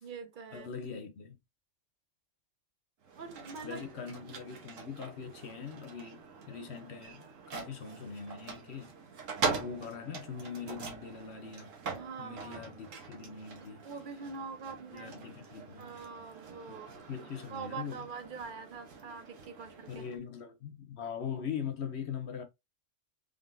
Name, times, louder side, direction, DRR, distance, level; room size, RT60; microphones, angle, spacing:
voice 1, 0.0-0.7 3.2-3.8 11.9-12.7 13.6-15.1 15.8-20.0, right 5 dB, 50° right, 0.7 m, -44 dB
voice 2, 0.5-1.4 3.6-8.9 9.5-11.7 12.2-13.8 14.9-16.0 16.7-16.8 17.1-18.0 19.9-22.4, left 7 dB, 65° left, 0.9 m, -41 dB
sound 1, 3.0-20.2, right 5 dB, 85° right, 1.4 m, -43 dB
3.8 x 3.4 x 2.5 m
omnidirectional pair, 1.3 m